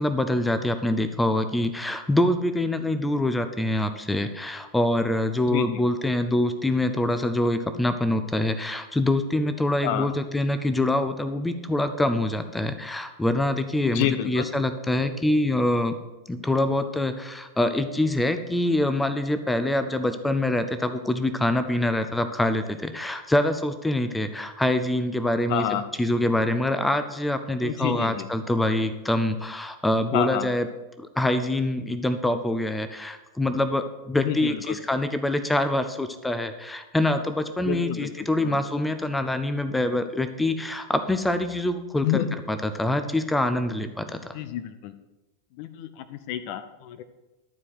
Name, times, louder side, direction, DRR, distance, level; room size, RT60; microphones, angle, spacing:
voice 1, 0.0-16.0 16.3-25.6 26.0-30.7 31.0-42.2 42.5-44.3, left 1 dB, 5° left, 10 dB, 0.7 m, -25 dB
voice 2, 5.5-5.8 9.8-10.1 13.8-14.5 25.5-25.9 27.6-28.3 30.1-30.5 34.2-34.8 37.6-38.6 42.0-42.4 44.3-44.9 45.6-47.0, left 11 dB, 45° left, 11 dB, 0.7 m, -29 dB
12.0 x 4.7 x 7.9 m, 1.1 s
figure-of-eight pair, 90°, 0 cm